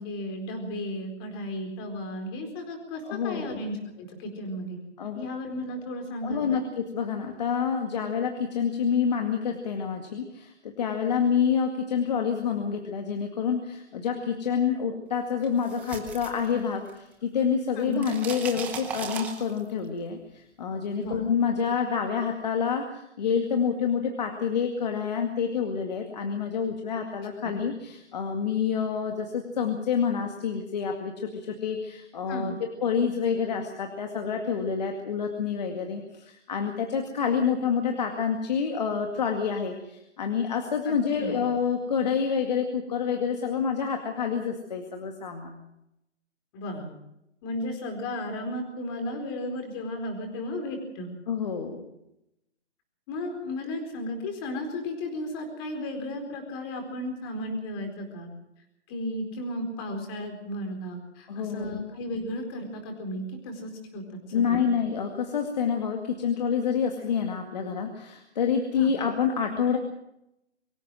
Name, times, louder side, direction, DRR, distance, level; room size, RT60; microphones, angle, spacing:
voice 1, 0.0-4.8 5.1-6.6 17.8-18.1 20.9-21.2 27.4-27.5 32.3-32.6 40.9-41.4 46.5-46.9 47.4-51.1 53.1-58.3 58.9-64.0 64.3-64.6 68.8-68.9, left 1 dB, 20° left, 4 dB, 4.3 m, -34 dB
voice 2, 3.1-3.6 5.0-5.3 6.2-45.6 51.3-51.9 61.3-61.8 64.3-69.8, left 6 dB, 35° left, 4 dB, 2.2 m, -28 dB
sound 1, 15.4-17.1 17.4-19.8, right 6 dB, 5° right, 0.9 m, -37 dB
24.0 x 15.0 x 7.6 m, 0.82 s
hypercardioid pair, 165°, 34 cm